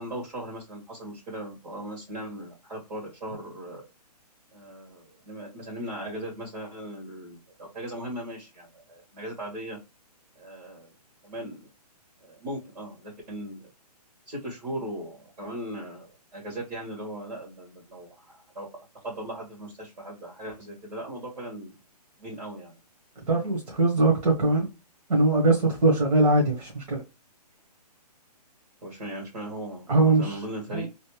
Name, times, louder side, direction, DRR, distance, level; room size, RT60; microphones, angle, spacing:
voice 1, 0.0-3.8 4.5-9.8 10.4-10.9 11.2-11.7 12.2-13.7 14.3-18.7 19.0-21.8 22.2-22.7 28.8-30.9, right 1 dB, 85° right, 1.9 m, -38 dB
voice 2, 23.3-24.7 25.1-27.0 29.9-30.4 30.7-30.9, right 2 dB, 70° right, 1.4 m, -21 dB
3.3 x 2.6 x 3.0 m
hypercardioid pair, 155°, 21 cm